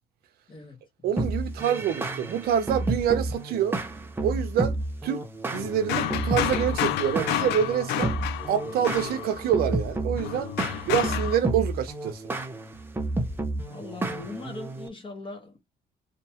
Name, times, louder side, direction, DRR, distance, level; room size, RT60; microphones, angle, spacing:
voice 1, 1.0-3.8 4.2-4.8 5.0-5.2 5.5-8.1 8.5-10.5 10.9-12.2, right 9 dB, 65° right, 0.5 m, -26 dB
sound 1, 1.2-14.9, right 2 dB, 15° right, 0.5 m, -31 dB
sound 2, 5.5-9.6 10.2-11.4, left 12 dB, 85° left, 0.4 m, -30 dB
voice 2, 13.6-15.6, left 3 dB, 30° left, 0.9 m, -40 dB
2.7 x 2.2 x 2.8 m
cardioid pair, 110°, 17 cm